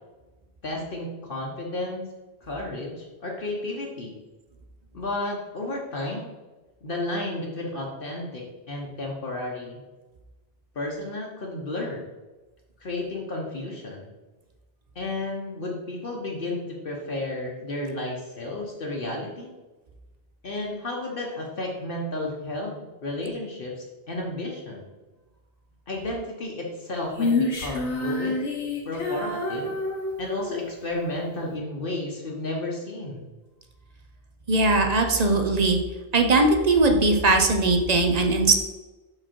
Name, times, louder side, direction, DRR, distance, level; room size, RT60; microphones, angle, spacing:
voice 1, 0.6-2.1 2.4-4.1 4.9-6.3 6.8-9.8 10.7-12.0 12.8-14.1 14.9-19.5 20.4-22.7 23.0-24.9 25.9-28.4 28.8-29.8 30.2-33.3, left 2 dB, 55° left, -1 dB, 1.1 m, -32 dB
Female singing, 27.1-30.7, left 3 dB, 75° left, 1.5 m, -28 dB
voice 2, 34.5-35.8 36.1-38.6, right 2 dB, 40° right, 4 dB, 0.7 m, -20 dB
5.8 x 4.9 x 4.4 m, 1.2 s
omnidirectional pair, 1.2 m